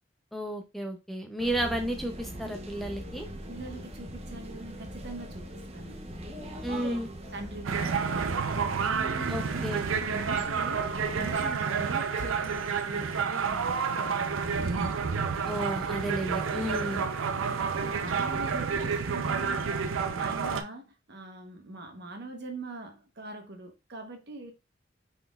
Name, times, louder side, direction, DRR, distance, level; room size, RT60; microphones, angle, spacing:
voice 1, 0.3-3.3 6.6-7.1 9.3-9.8 15.5-17.1, right 1 dB, ahead, 0.6 m, -32 dB
sound 1, 1.4-11.5, right 1 dB, 30° right, 0.7 m, -42 dB
voice 2, 3.5-6.1 6.7-7.0 7.3-9.7 10.0-14.5 17.3-24.5, right 2 dB, 55° right, 1.1 m, -42 dB
sound 2, 7.7-20.6, right 5 dB, 85° right, 0.5 m, -29 dB
5.7 x 4.0 x 2.3 m
head